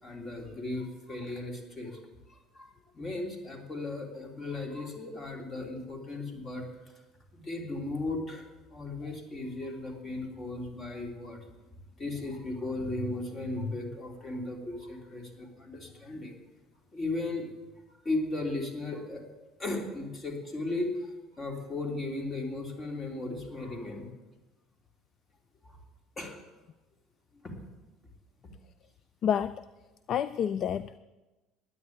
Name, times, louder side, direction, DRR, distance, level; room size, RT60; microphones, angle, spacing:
voice 1, 0.0-2.0 2.3-6.9 7.3-11.6 12.0-16.4 16.9-17.4 18.0-19.2 19.6-24.1 25.6-25.8 26.2-26.4 27.4-27.5, left 2 dB, 30° left, 2 dB, 3.3 m, -36 dB
voice 2, 29.2-29.5 30.1-31.0, left 8 dB, 50° left, 16 dB, 0.4 m, -28 dB
9.7 x 9.5 x 9.3 m, 1.1 s
supercardioid pair, 85°, 0 cm